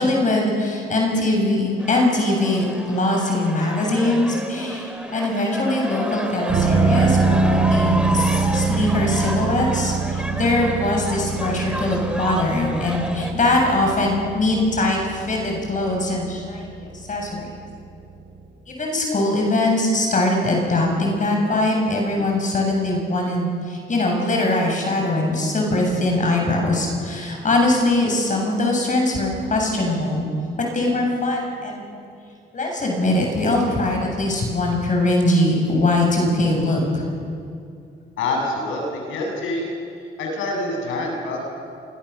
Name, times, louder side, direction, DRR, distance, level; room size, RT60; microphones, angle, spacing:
voice 1, 0.0-17.5 18.7-30.3 30.6-31.9 32.5-37.0, left 2 dB, 40° left, 0 dB, 7.5 m, -21 dB
sound 1, 1.8-13.3, equal, 5° right, 2.8 m, -30 dB
sound 2, 6.5-18.0 18.4-18.5, right 5 dB, 80° right, 8.0 m, -24 dB
voice 2, 38.2-39.7 40.2-41.4, left 2 dB, 90° left, 0 dB, 7.2 m, -26 dB
26.0 x 23.5 x 7.0 m, 2.4 s
cardioid pair, 90°, 20 cm